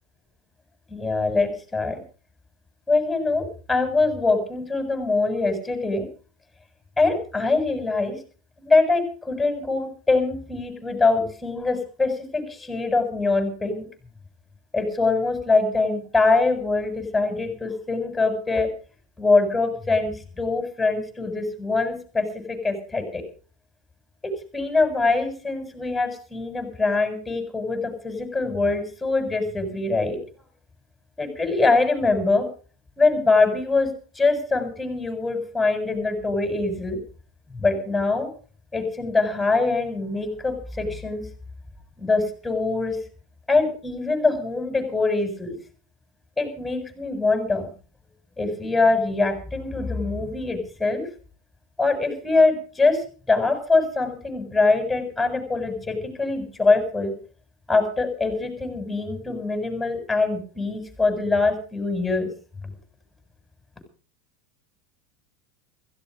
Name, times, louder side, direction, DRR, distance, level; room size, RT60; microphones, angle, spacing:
voice 1, 0.9-2.0 2.9-6.1 7.0-8.2 8.6-13.9 14.7-18.7 19.2-23.2 24.2-30.2 31.2-32.5 33.0-33.9 34.2-37.0 37.5-38.3 38.7-41.2 42.0-43.0 43.5-45.5 46.4-47.7 48.4-51.0 51.8-53.0 53.3-57.1 57.7-62.3, left 3 dB, 10° left, 6 dB, 7.4 m, -23 dB
16.0 x 15.5 x 5.1 m, 0.40 s
supercardioid pair, 110°, 0 cm